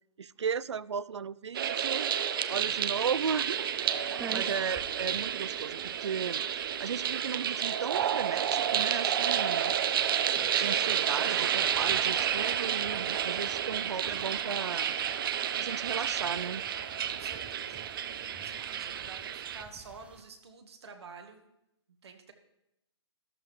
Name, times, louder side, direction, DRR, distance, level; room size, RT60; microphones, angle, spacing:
voice 1, 0.2-2.1 2.5-6.4 6.8-9.7 10.6-15.0 15.6-16.6, right 6 dB, 90° right, 20 dB, 0.4 m, -35 dB
sound 1, 1.5-19.6, right 9 dB, 55° right, 0.7 m, -30 dB
sound 2, 2.5-20.2, right 5 dB, 10° right, 0.5 m, -52 dB
voice 2, 4.1-4.5 17.0-17.9 18.3-21.5 22.0-22.3, right 5 dB, 70° right, 4 dB, 1.5 m, -49 dB
13.5 x 11.0 x 3.2 m, 0.85 s
hypercardioid pair, 140°, 14 cm